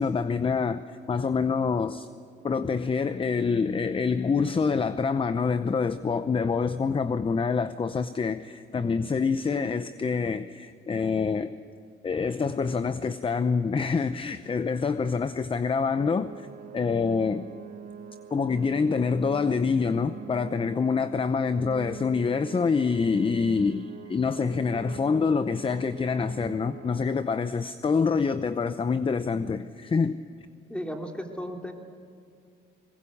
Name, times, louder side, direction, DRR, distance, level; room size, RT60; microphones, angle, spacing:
voice 1, 0.0-2.1 2.4-11.5 12.0-16.3 16.7-17.5 18.3-30.2, left 5 dB, 25° left, 0.7 m, -26 dB
sound 1, 15.9-27.1, right 7 dB, 45° right, 1.5 m, -44 dB
voice 2, 30.7-31.7, equal, 5° left, 3.1 m, -34 dB
21.5 x 21.0 x 8.5 m
cardioid pair, 90°, 20 cm